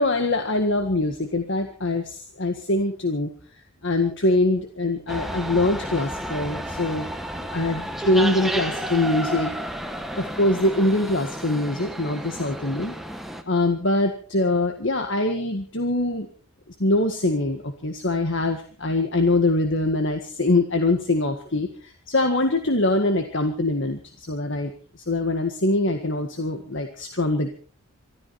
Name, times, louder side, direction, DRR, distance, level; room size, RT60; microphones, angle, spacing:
voice 1, 0.0-3.3 3.8-7.1 7.3-9.5 10.2-13.0 13.5-16.3 16.7-27.5, left 2 dB, 55° left, 5 dB, 1.7 m, -23 dB
sound 1, 5.1-13.4, equal, ahead, 1.4 m, -32 dB
24.5 x 14.0 x 4.3 m, 0.40 s
head